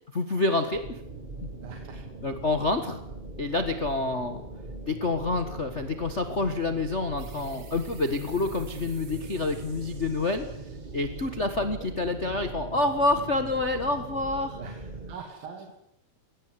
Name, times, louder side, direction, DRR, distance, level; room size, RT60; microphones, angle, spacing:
voice 1, 0.1-1.0 1.4-1.5 2.2-3.0 3.4-4.4 4.9-10.4 10.9-14.6, left 2 dB, 70° left, 7 dB, 0.6 m, -28 dB
sound 1, 0.7-15.1, right 2 dB, 20° right, 1.6 m, -41 dB
sound 2, 7.2-12.5, right 6 dB, 65° right, 4.8 m, -54 dB
voice 2, 14.5-15.7, right 5 dB, 85° right, 2 dB, 4.6 m, -42 dB
21.5 x 18.0 x 9.6 m, 0.77 s
omnidirectional pair, 4.0 m